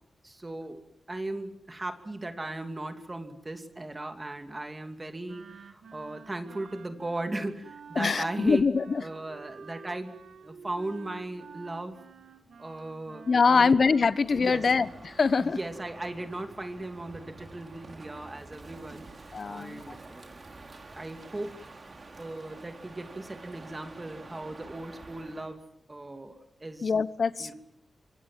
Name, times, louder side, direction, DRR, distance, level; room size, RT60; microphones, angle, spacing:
voice 1, 0.2-10.2 10.4-12.0 12.6-13.8 14.3-14.9 15.4-20.4 20.9-21.7 22.2-25.6 25.9-26.9 27.4-27.5, right 2 dB, 25° right, 6 dB, 2.6 m, -37 dB
Wind instrument woodwind instrument, 5.2-14.3, right 6 dB, 85° right, 2.3 m, -49 dB
voice 2, 8.0-9.0 13.3-15.6 19.3-19.8 26.8-27.5, left 5 dB, 55° left, 15 dB, 1.2 m, -24 dB
Crow, 14.1-25.6, right 3 dB, 45° right, 3.8 m, -48 dB
25.5 x 25.0 x 7.5 m, 0.75 s
wide cardioid pair, 85°, 0 cm